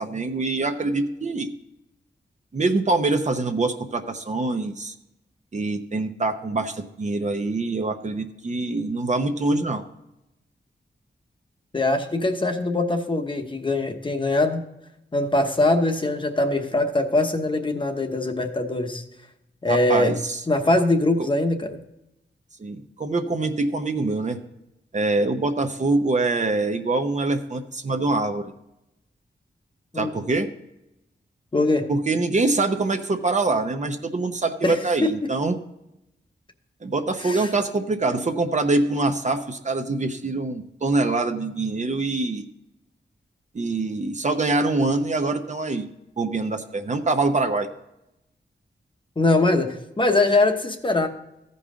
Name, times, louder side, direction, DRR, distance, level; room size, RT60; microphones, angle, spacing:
voice 1, 0.0-1.5 2.5-4.9 5.5-9.8 19.7-20.4 21.2-21.3 22.6-24.4 24.9-28.5 30.0-30.5 31.9-35.6 36.8-42.5 43.5-45.9 46.2-47.7, right 3 dB, 40° right, 6 dB, 0.7 m, -24 dB
voice 2, 11.7-14.6 15.1-19.0 19.6-20.1 20.5-21.8 29.9-30.1 31.5-31.9 34.6-35.1 37.2-37.5 49.2-51.1, left 2 dB, 25° left, 5 dB, 1.0 m, -22 dB
15.0 x 5.4 x 3.7 m, 0.89 s
wide cardioid pair, 140°, 19 cm